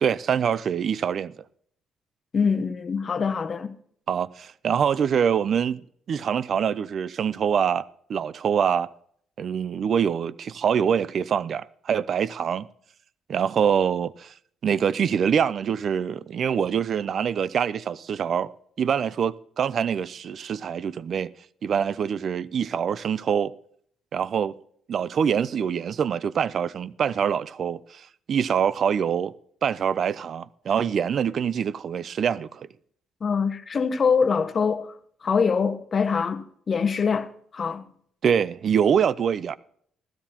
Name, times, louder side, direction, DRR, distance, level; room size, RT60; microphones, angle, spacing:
voice 1, 0.0-1.3 4.1-5.8 6.1-8.9 9.4-12.7 13.3-14.3 14.6-18.5 18.8-21.3 21.6-23.5 24.1-24.5 24.9-29.3 29.6-32.7 38.2-39.6, right 7 dB, 55° right, 0.4 m, -25 dB
voice 2, 2.3-3.7 33.2-35.0 35.2-37.8, left 5 dB, 45° left, 1.0 m, -24 dB
15.0 x 14.0 x 2.9 m
cardioid pair, 90°, 0 cm